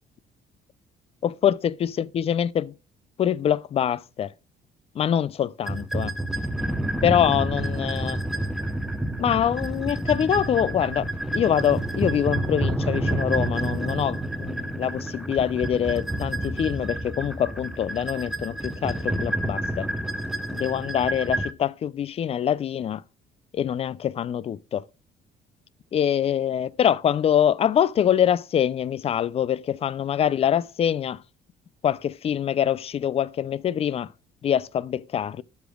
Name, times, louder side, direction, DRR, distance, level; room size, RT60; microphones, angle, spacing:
voice 1, 1.2-2.7 3.2-4.3 5.0-6.1 7.0-8.2 9.2-19.9 20.5-23.0 23.5-24.8 25.9-31.2 31.8-34.1 34.4-35.4, left 9 dB, 35° left, 0.4 m, -24 dB
sound 1, 5.7-21.5, right 1 dB, ahead, 0.7 m, -29 dB
13.0 x 5.1 x 2.3 m
cardioid pair, 110°, 17 cm